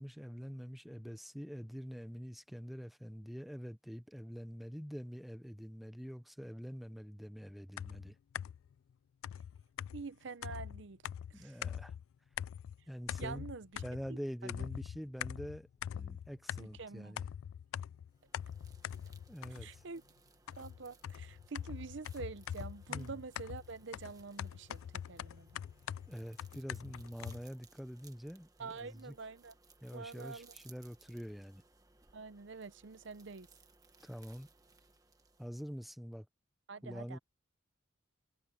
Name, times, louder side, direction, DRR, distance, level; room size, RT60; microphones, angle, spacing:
voice 1, 0.0-8.2 11.3-11.9 12.9-13.5 13.8-17.3 19.3-19.8 22.9-23.2 26.1-29.1 29.8-31.6 34.0-34.5 35.4-36.3 36.8-37.2, equal, ahead, 0.6 m, -45 dB
sound 1, 7.8-8.7 9.2-12.0 12.4-12.8 13.1-14.2 14.5-16.8 17.2-19.9 20.5-27.4, left 9 dB, 90° left, 0.3 m, -43 dB
voice 2, 9.9-11.0 11.3-11.6 13.2-13.8 14.1-14.2 14.6-14.7 16.6-17.2 19.6-20.0 20.6-25.5 28.6-29.5 29.9-30.5 32.1-33.5 36.7-37.2, right 4 dB, 65° right, 0.6 m, -46 dB
sound 2, 18.1-35.9, right 4 dB, 20° right, 1.4 m, -64 dB
head